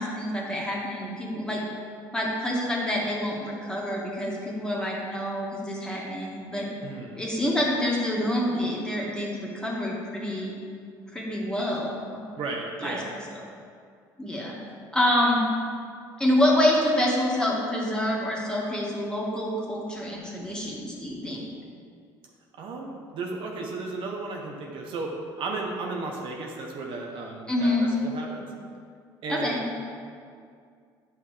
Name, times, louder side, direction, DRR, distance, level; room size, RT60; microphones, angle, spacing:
voice 1, 0.0-1.6 2.1-6.7 7.2-10.6 11.1-12.2 12.8-13.0 14.2-14.6 14.9-15.4 16.2-21.5 27.5-27.9 29.3-29.6, left 1 dB, 10° left, -4 dB, 1.9 m, -27 dB
voice 2, 6.8-7.2 12.4-13.1 22.6-28.5 29.2-29.6, right 3 dB, 60° right, 0 dB, 1.0 m, -34 dB
9.0 x 5.8 x 3.3 m, 2.2 s
supercardioid pair, 85°, 10 cm